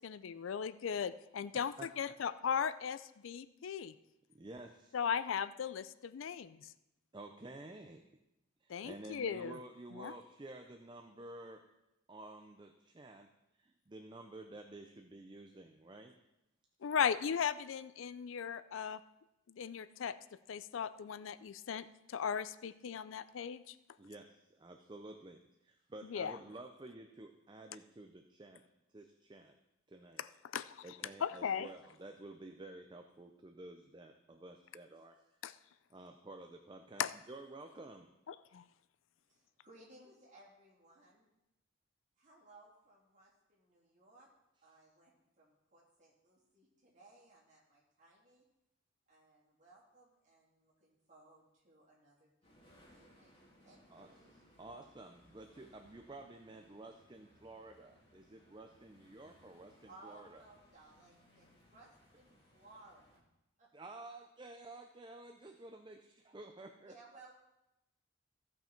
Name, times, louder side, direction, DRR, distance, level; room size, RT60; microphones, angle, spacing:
voice 1, 0.0-3.9 4.9-6.7 8.7-9.6 10.0-10.1 16.8-19.0 19.5-20.1 20.5-23.7 26.1-26.4 30.5-30.8 31.2-31.7 35.4-35.5 37.0-37.1 38.3-38.6, left 7 dB, 80° left, 15 dB, 0.4 m, -37 dB
voice 2, 4.3-4.9 7.1-8.0 8.6-11.6 12.1-13.3 13.6-16.1 24.0-28.6 28.9-29.6 29.9-30.2 30.8-35.2 35.9-38.1 53.9-60.4 63.7-66.9, right 2 dB, 25° right, 5 dB, 0.5 m, -51 dB
voice 3, 39.2-41.3 42.2-44.3 44.6-48.4 49.1-54.3 59.9-61.9 62.1-63.2 63.6-63.7 66.9-67.3, right 2 dB, 40° right, -5 dB, 3.2 m, -61 dB
sound 1, 52.4-63.2, equal, 30° left, 3.0 m, -66 dB
15.5 x 5.7 x 4.5 m, 0.91 s
head